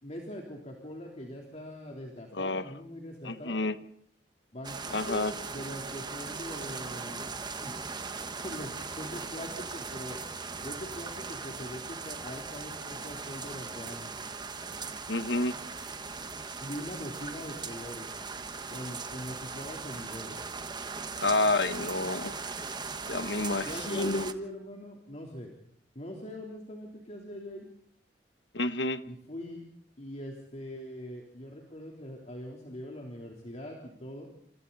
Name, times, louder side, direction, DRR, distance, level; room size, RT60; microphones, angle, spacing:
voice 1, 0.0-3.6 4.5-7.3 7.6-7.7 8.4-10.2 10.6-14.1 16.6-18.1 18.7-20.4 23.7-25.5 26.0-27.7 29.1-29.7 30.0-34.3, equal, 40° left, 3.6 m, -42 dB
voice 2, 2.3-2.7 3.2-3.8 4.9-5.3 15.1-15.6 21.2-22.4 23.1-24.2 28.5-29.0, left 2 dB, 80° left, 1.3 m, -29 dB
sound 1, 4.6-24.3, right 4 dB, 25° right, 1.3 m, -39 dB
28.0 x 27.5 x 4.1 m
head